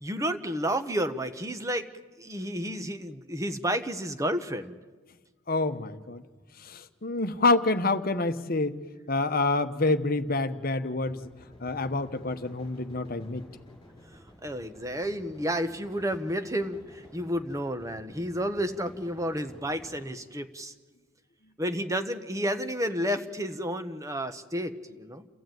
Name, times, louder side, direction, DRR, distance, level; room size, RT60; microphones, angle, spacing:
voice 1, 0.0-1.9 2.2-4.8 14.4-20.7 21.6-25.3, equal, 15° right, 9 dB, 1.1 m, -31 dB
voice 2, 5.5-6.2 6.6-8.8 9.1-11.3 11.6-13.4, left 3 dB, 45° left, 9 dB, 1.1 m, -27 dB
sound 1, 11.0-20.0, equal, 20° left, 4.7 m, -52 dB
29.0 x 14.0 x 9.3 m, 1.4 s
head